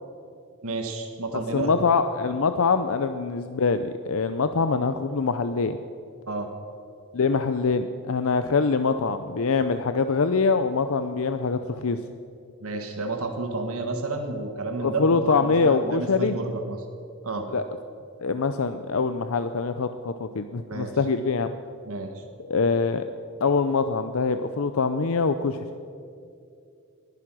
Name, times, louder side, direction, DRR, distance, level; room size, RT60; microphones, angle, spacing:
voice 1, 0.6-1.7 6.3-6.5 12.6-16.8 17.2-17.4 20.7-20.9 21.9-22.2, right 3 dB, 70° right, 4 dB, 1.4 m, -31 dB
voice 2, 1.3-5.8 7.1-12.0 14.8-16.4 17.5-17.6 18.2-21.5 22.5-23.0 23.4-25.7, left 4 dB, 65° left, 10 dB, 0.6 m, -24 dB
20.5 x 11.0 x 6.2 m, 2.5 s
head